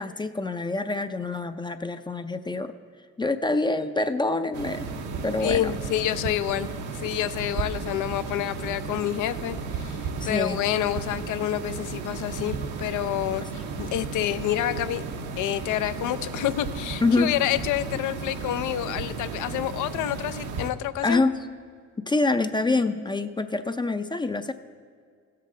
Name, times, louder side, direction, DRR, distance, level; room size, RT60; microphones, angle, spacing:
voice 1, 0.0-2.7 3.2-4.9 5.2-5.7 10.2-10.6 17.0-17.3 21.0-21.4 22.1-24.5, left 3 dB, 15° left, 9 dB, 0.4 m, -26 dB
sound 1, 4.5-20.7, right 4 dB, 80° right, 0.8 m, -34 dB
voice 2, 5.4-10.0 10.2-15.0 15.4-21.2, left 12 dB, 80° left, 13 dB, 0.5 m, -28 dB
16.5 x 7.5 x 3.7 m, 2.1 s
cardioid pair, 90°, 30 cm